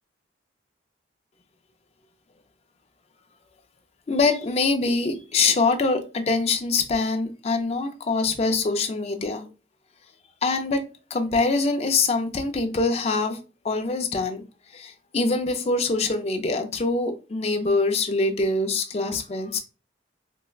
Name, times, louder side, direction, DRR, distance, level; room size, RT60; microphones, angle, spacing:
voice 1, 4.1-9.5 10.4-10.8 11.1-14.4 14.7-19.6, left 3 dB, 35° left, 0.4 m, -24 dB
4.4 x 2.0 x 2.3 m
head